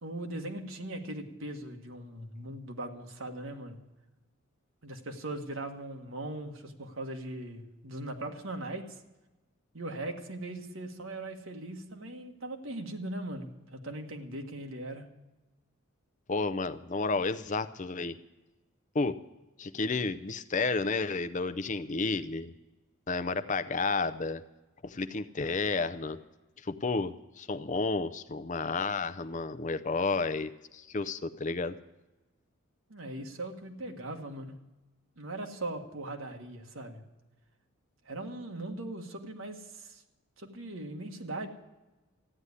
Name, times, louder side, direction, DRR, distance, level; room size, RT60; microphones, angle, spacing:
voice 1, 0.0-3.8 4.8-9.0 9.7-15.1 32.9-34.6 35.2-37.0 38.0-40.0 40.4-41.5, right 1 dB, 70° right, 4 dB, 1.7 m, -39 dB
voice 2, 16.3-18.2 18.9-19.2 19.6-22.5 23.1-24.4 24.8-26.2 26.6-31.8, left 3 dB, 35° left, 12 dB, 0.5 m, -31 dB
14.5 x 9.6 x 9.8 m, 1.1 s
head